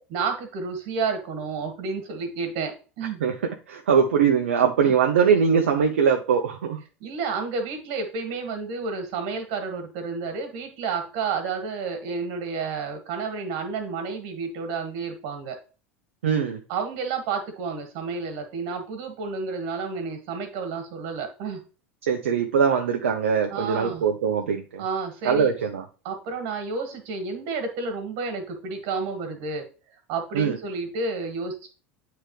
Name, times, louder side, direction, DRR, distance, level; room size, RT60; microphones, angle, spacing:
voice 1, 0.1-3.2 4.8-4.9 7.0-15.6 16.7-21.6 23.5-24.0 24.8-25.5 26.0-29.6 30.1-31.7, right 4 dB, 60° right, 6 dB, 1.8 m, -30 dB
voice 2, 3.7-6.8 16.2-16.6 22.0-24.8 25.2-25.9 30.3-30.6, right 6 dB, 80° right, 4 dB, 0.6 m, -22 dB
8.7 x 3.4 x 3.2 m, 0.36 s
hypercardioid pair, 80°, 7 cm